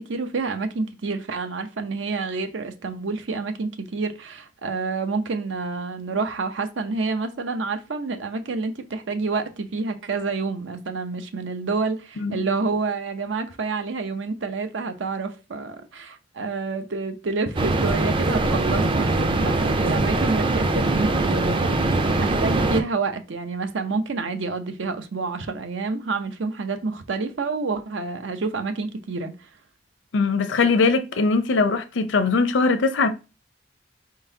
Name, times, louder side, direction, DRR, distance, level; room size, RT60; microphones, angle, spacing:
voice 1, 0.0-21.7 22.2-29.5, right 4 dB, 85° right, 0.6 m, -28 dB
sound 1, 17.6-22.8, right 2 dB, 25° right, 0.4 m, -22 dB
voice 2, 30.1-33.1, left 4 dB, 80° left, 0.6 m, -21 dB
4.5 x 3.8 x 2.7 m
head